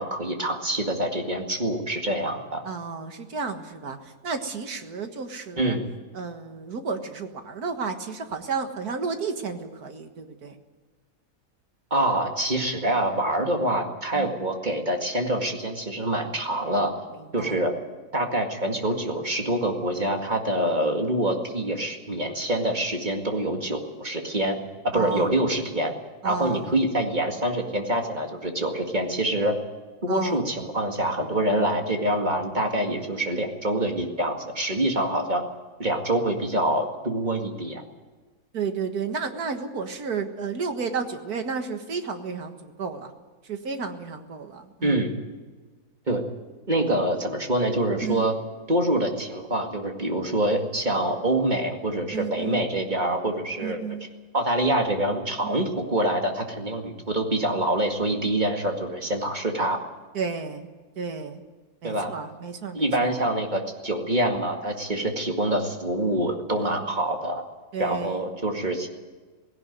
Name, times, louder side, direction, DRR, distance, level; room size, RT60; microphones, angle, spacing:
voice 1, 0.0-2.6 5.6-5.9 11.9-16.9 17.3-17.7 18.1-24.6 24.8-25.9 26.2-29.6 30.0-35.4 35.8-37.8 44.8-45.1 46.1-46.2 46.7-48.3 48.7-53.8 54.3-59.8 61.8-62.1 62.7-67.4 67.8-68.9, right 1 dB, 30° right, 3 dB, 2.2 m, -25 dB
voice 2, 2.6-5.8 6.1-10.6 14.1-14.5 17.1-17.6 24.9-25.3 26.2-26.9 30.1-30.7 38.5-43.1 43.5-45.0 48.0-48.3 52.1-52.7 53.6-54.1 55.4-55.7 60.1-60.7 61.0-61.4 61.8-63.3 66.5-67.0 67.7-68.4, right 5 dB, 80° right, 6 dB, 2.1 m, -32 dB
17.5 x 17.0 x 9.4 m, 1.4 s
omnidirectional pair, 1.6 m